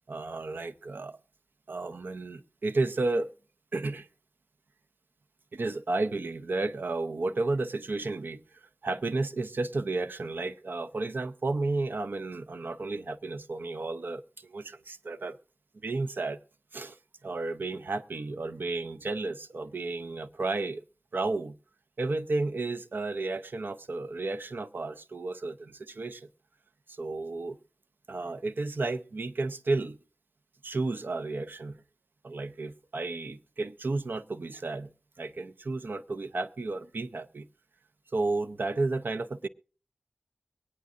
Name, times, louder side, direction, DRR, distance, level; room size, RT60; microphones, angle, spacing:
voice 1, 0.1-1.2 1.7-3.3 3.7-4.1 5.5-8.4 8.8-15.4 15.8-16.4 16.7-17.0 17.2-20.8 21.1-21.5 22.0-26.3 26.9-27.6 28.1-30.0 30.6-31.8 32.2-34.9 35.2-37.5 38.1-39.5, right 3 dB, 70° right, 0.6 m, -32 dB
23.0 x 9.4 x 2.5 m
wide cardioid pair, 80°, 3 cm